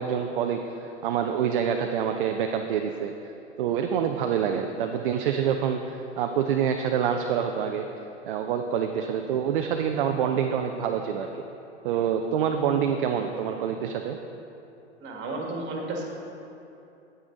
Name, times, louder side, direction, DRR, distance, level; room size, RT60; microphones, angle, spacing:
voice 1, 0.0-3.3 3.6-7.9 8.2-11.4 11.8-14.2, right 8 dB, 50° right, 5 dB, 0.5 m, -26 dB
voice 2, 15.0-16.0, right 2 dB, 30° right, 0 dB, 1.7 m, -32 dB
9.4 x 9.2 x 3.8 m, 2.8 s
figure-of-eight pair, 90°, 35 cm